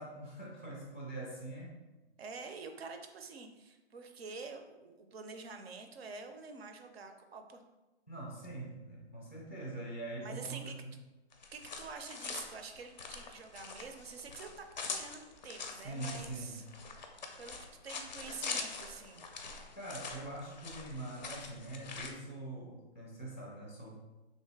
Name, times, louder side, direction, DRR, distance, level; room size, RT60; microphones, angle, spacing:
voice 1, 0.0-1.8 8.1-10.9 15.8-16.6 19.8-23.9, right 2 dB, 10° right, -5 dB, 0.5 m, -43 dB
voice 2, 2.2-7.6 10.2-10.8 11.5-16.6 17.4-17.6 17.8-19.3, right 4 dB, 65° right, 6 dB, 0.6 m, -47 dB
sound 1, 11.3-22.1, left 4 dB, 40° left, 0.4 m, -44 dB
3.3 x 2.6 x 4.5 m, 1.1 s
hypercardioid pair, 170°, 34 cm